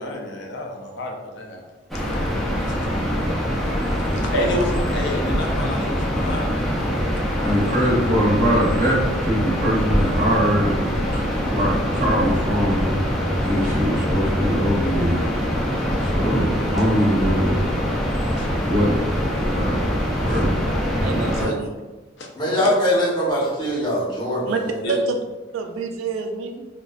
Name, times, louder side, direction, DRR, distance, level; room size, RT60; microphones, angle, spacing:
voice 1, 0.0-1.6 2.7-2.8 4.1-7.4 15.9-16.2 18.4-18.5 20.3-20.4 22.2-22.3 24.8-25.0, left 1 dB, 60° left, 1 dB, 0.5 m, -30 dB
sound 1, 1.9-21.5, equal, ahead, 0.3 m, -23 dB
voice 2, 7.4-10.9 11.1-11.2 11.5-13.0 13.4-15.7 16.0-17.7 18.7-19.0 19.5-19.9 20.2-20.6, equal, 40° right, -7 dB, 0.6 m, -22 dB
voice 3, 21.0-21.7 22.4-22.6 24.5-24.6 24.9-25.2 25.5-26.6, right 4 dB, 90° right, 5 dB, 0.3 m, -27 dB
voice 4, 22.3-24.8, equal, 20° left, -7 dB, 0.7 m, -22 dB
2.5 x 2.1 x 2.2 m, 1.2 s
head